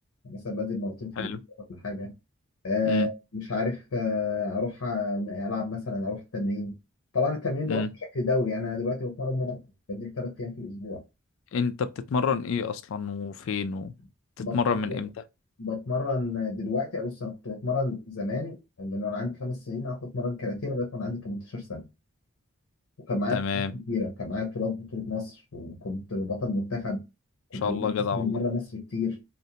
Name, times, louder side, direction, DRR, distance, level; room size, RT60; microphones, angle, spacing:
voice 1, 0.2-1.3 1.8-2.1 2.6-6.7 7.1-7.8 8.1-9.6 9.9-11.0 14.4-15.0 15.6-21.9 23.1-27.0 27.5-29.2, left 3 dB, 80° left, 0.7 m, -30 dB
voice 2, 11.5-13.9 14.4-15.1 23.3-23.7 27.6-28.4, left 5 dB, 60° left, 0.3 m, -28 dB
2.5 x 2.1 x 2.7 m
head